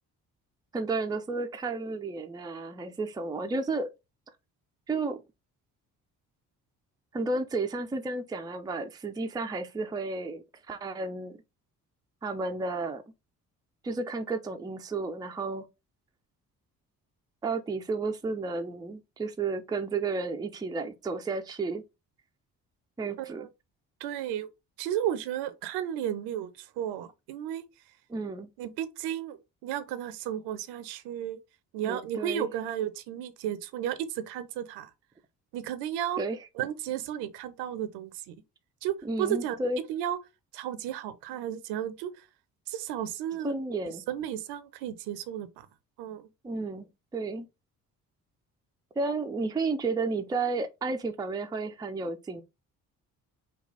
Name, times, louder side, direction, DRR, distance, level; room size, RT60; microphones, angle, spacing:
voice 1, 0.7-3.9 4.9-5.2 7.1-11.4 12.2-13.0 13.8-15.6 17.4-21.8 23.0-23.5 28.1-28.5 31.9-32.5 36.2-36.4 39.0-39.8 43.4-44.0 46.4-46.9 47.1-47.5 49.0-52.4, right 3 dB, 10° right, 0.5 m, -32 dB
voice 2, 23.2-23.5 24.0-24.5 24.8-27.6 28.6-31.4 31.7-34.9 35.5-36.2 36.6-38.3 38.8-39.6 39.9-40.2 40.5-42.3 42.7-43.5 44.1-45.7 46.0-46.3, right 10 dB, 55° right, 0.7 m, -33 dB
5.5 x 2.3 x 3.9 m
figure-of-eight pair, 40°, 47 cm